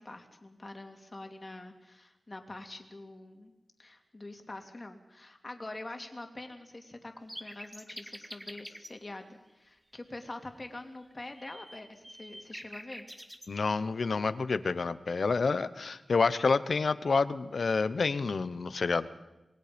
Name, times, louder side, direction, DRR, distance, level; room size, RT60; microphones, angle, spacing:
voice 1, 0.0-3.5 3.8-13.1, left 2 dB, 30° left, 5 dB, 2.6 m, -45 dB
sound 1, 7.3-9.0 11.1-13.5, equal, 5° right, 1.7 m, -46 dB
voice 2, 13.5-19.1, left 4 dB, 65° left, 14 dB, 1.0 m, -28 dB
27.0 x 20.5 x 5.3 m, 1.0 s
wide cardioid pair, 90°, 0 cm